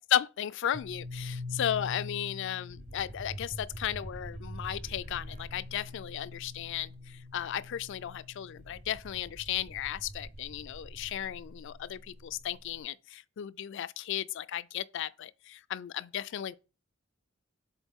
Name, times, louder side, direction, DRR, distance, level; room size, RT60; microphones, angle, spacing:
voice 1, 0.1-16.5, left 10 dB, 60° left, 0.3 m, -35 dB
sound 1, 0.7-12.7, left 1 dB, 35° right, 0.6 m, -43 dB
7.1 x 4.1 x 3.6 m
head